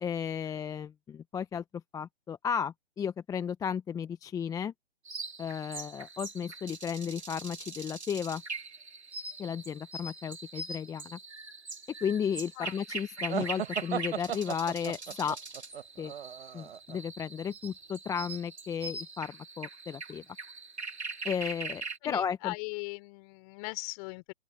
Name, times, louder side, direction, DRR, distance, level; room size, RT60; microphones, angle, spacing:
voice 1, 0.0-1.6 1.9-4.7 5.4-8.4 9.4-11.2 12.0-15.4 16.0-16.1 16.5-20.2 21.2-22.5, left 7 dB, 10° left, 0.9 m, -34 dB
sound 1, 5.0-22.0, right 3 dB, 90° right, 2.5 m, -42 dB
sound 2, 13.3-17.0, right 9 dB, 60° right, 1.2 m, -36 dB
voice 2, 22.0-24.3, left 31 dB, 35° left, 4.1 m, -39 dB
figure-of-eight pair, 130°, 32 cm